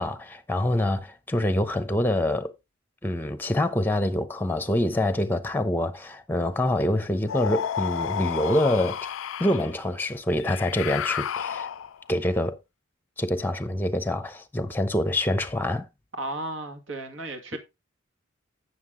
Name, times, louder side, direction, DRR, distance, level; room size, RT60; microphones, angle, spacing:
voice 1, 0.0-2.5 3.0-9.1 9.4-11.7 12.1-12.6 13.2-15.8, left 1 dB, 10° left, 0.7 m, -26 dB
sound 1, 7.3-9.7 10.4-12.1, left 8 dB, 75° left, 0.4 m, -31 dB
voice 2, 16.1-17.6, right 2 dB, 70° right, 2.0 m, -34 dB
9.5 x 6.4 x 3.7 m
head